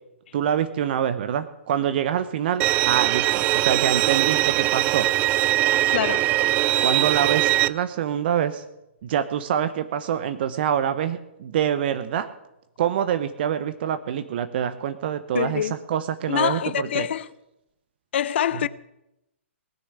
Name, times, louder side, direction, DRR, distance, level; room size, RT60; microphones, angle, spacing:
voice 1, 0.3-5.1 6.8-8.6 9.0-12.3 12.8-17.1, right 9 dB, 50° right, 0.9 m, -25 dB
Bowed string instrument, 2.6-7.7, right 15 dB, 25° right, 0.4 m, -21 dB
voice 2, 5.9-6.3 15.3-15.7 16.3-17.3 18.1-18.7, left 10 dB, 55° left, 0.6 m, -25 dB
19.0 x 6.7 x 9.7 m
hypercardioid pair, 135°, 7 cm